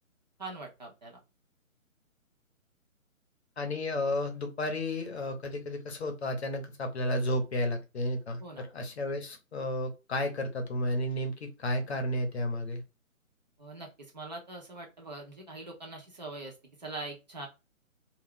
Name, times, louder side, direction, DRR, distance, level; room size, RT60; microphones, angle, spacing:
voice 1, 0.4-1.2 8.4-8.7 13.6-17.5, right 2 dB, 30° right, -1 dB, 0.6 m, -43 dB
voice 2, 3.6-12.8, left 1 dB, 50° left, 5 dB, 0.7 m, -32 dB
2.3 x 2.0 x 3.5 m, 0.27 s
figure-of-eight pair, 150°, 41 cm